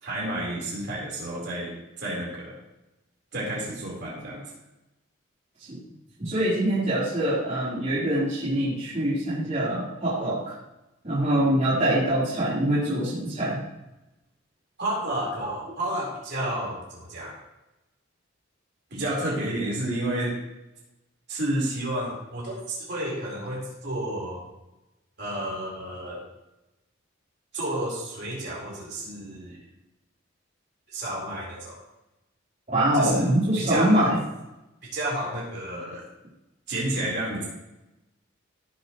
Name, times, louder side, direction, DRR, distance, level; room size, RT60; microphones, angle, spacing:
voice 1, 0.0-2.5 3.3-4.4 14.8-17.4 18.9-20.4 21.3-24.4 25.2-26.2 27.5-29.6 30.9-31.8 32.9-34.1 34.8-36.0 36.7-37.5, right 1 dB, 50° right, -4 dB, 4.3 m, -31 dB
voice 2, 6.2-10.5 11.0-13.6 15.4-15.5 32.7-34.2, right 1 dB, 35° right, -10 dB, 3.9 m, -24 dB
17.0 x 7.6 x 3.1 m, 0.96 s
head